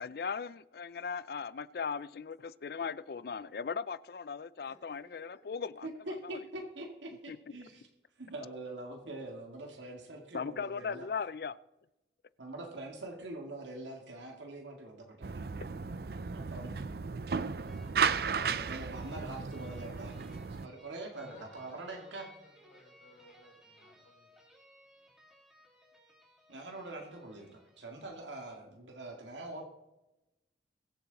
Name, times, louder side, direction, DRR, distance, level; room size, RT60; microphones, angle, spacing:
voice 1, 0.0-5.9 6.3-6.4 7.3-7.4 10.3-11.6, left 5 dB, 55° left, 18 dB, 0.4 m, -38 dB
voice 2, 4.6-5.4 7.7-7.8 21.1-24.3, left 1 dB, 80° left, -5 dB, 5.6 m, -59 dB
voice 3, 5.8-7.9 8.2-11.1 12.4-15.4 16.3-16.8 18.2-20.3 20.6-22.2 26.5-29.6, right 2 dB, 85° right, 2 dB, 2.1 m, -44 dB
sound 1, 15.2-20.7, right 5 dB, 55° right, 0.5 m, -34 dB
sound 2, 17.7-28.4, equal, ahead, 3.3 m, -61 dB
22.0 x 7.5 x 4.1 m, 0.96 s
head